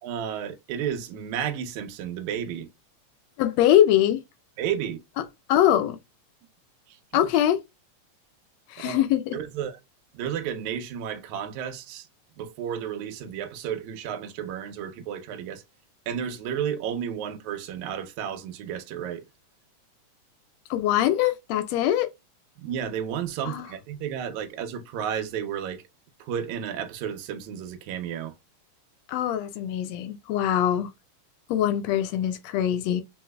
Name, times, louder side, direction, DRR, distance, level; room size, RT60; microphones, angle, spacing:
voice 1, 0.0-2.7 4.6-5.0 8.8-9.0 9.3-9.8 10.1-12.1 12.4-15.6 16.1-19.2 22.6-25.8 26.2-28.4, right 8 dB, 75° right, 2.0 m, -32 dB
voice 2, 3.4-4.2 5.5-6.0 7.1-7.6 8.7-9.4 20.7-22.1 23.4-23.7 29.1-30.9 31.5-33.0, left 11 dB, 80° left, 1.5 m, -22 dB
4.7 x 3.8 x 2.2 m
omnidirectional pair, 3.6 m